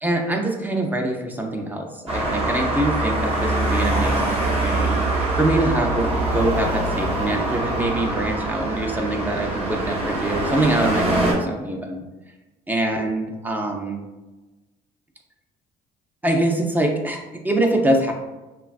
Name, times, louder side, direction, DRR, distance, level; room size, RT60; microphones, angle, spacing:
voice 1, 0.0-12.0 12.7-14.0 16.2-17.2 17.4-18.1, right 1 dB, 10° right, 2 dB, 0.4 m, -24 dB
Traffic noise roadway noise, 2.1-11.3, right 2 dB, 35° right, 0.9 m, -23 dB
3.1 x 2.3 x 2.4 m, 1.1 s
cardioid pair, 110°, 17 cm